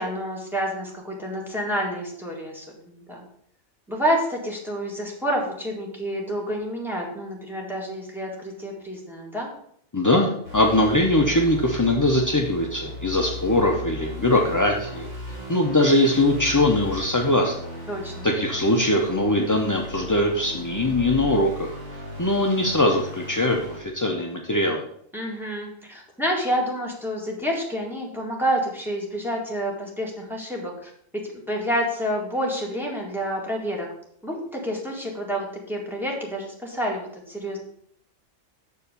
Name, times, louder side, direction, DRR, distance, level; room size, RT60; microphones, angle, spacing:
voice 1, 0.0-3.2 3.9-9.5 17.9-18.2 25.1-33.9 34.2-37.6, equal, ahead, -3 dB, 2.0 m, -28 dB
voice 2, 9.9-15.1 15.5-17.5 18.2-24.8, left 1 dB, 25° left, 1 dB, 0.5 m, -21 dB
sound 1, 10.4-23.8, left 1 dB, 75° right, 3.4 m, -37 dB
7.2 x 4.6 x 6.7 m, 0.66 s
omnidirectional pair, 1.4 m